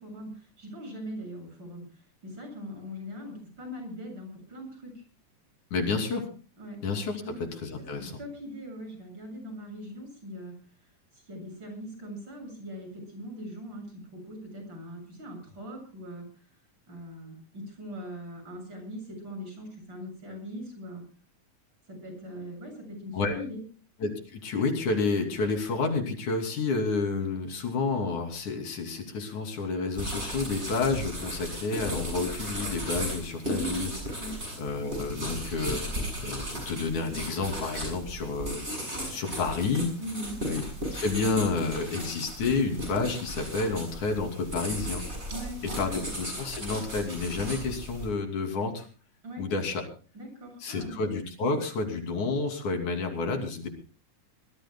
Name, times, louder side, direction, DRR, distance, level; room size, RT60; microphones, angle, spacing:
voice 1, 0.0-5.0 6.6-6.8 7.2-7.4 7.8-16.2 16.9-21.0 21.9-23.6 33.5-33.8 34.2-34.4 40.0-40.4 45.3-45.8 49.2-49.4 50.1-51.0, equal, 35° right, 3 dB, 8.1 m, -41 dB
voice 2, 5.7-6.3 6.8-7.2 7.6-8.1 23.1-23.3 24.0-33.9 34.6-39.9 40.4-40.6 40.9-45.0 45.8-48.9 49.4-49.8 50.6-53.7, left 4 dB, 85° left, 3 dB, 4.4 m, -30 dB
sound 1, 29.9-48.1, right 1 dB, 20° right, 7.3 m, -36 dB
25.0 x 20.0 x 2.3 m, 0.38 s
omnidirectional pair, 3.4 m